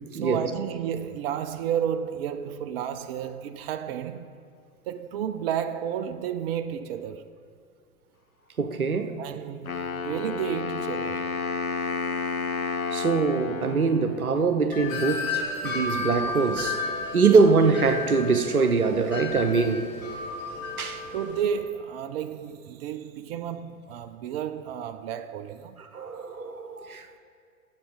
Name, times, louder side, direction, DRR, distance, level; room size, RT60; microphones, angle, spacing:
voice 1, 0.1-4.3 4.9-7.3 9.2-11.3 17.2-17.4 21.1-25.8, right 9 dB, 45° right, 0.5 m, -32 dB
voice 2, 8.6-9.2 12.9-16.8 17.1-19.9 20.8-21.0 25.9-27.2, right 4 dB, 85° right, 0.8 m, -23 dB
Wind instrument woodwind instrument, 9.7-14.6, left 4 dB, 85° left, 0.8 m, -31 dB
Wind chime, 14.7-21.4, left 3 dB, 65° left, 2.7 m, -33 dB
12.0 x 7.4 x 4.7 m
figure-of-eight pair, 90°, 42 cm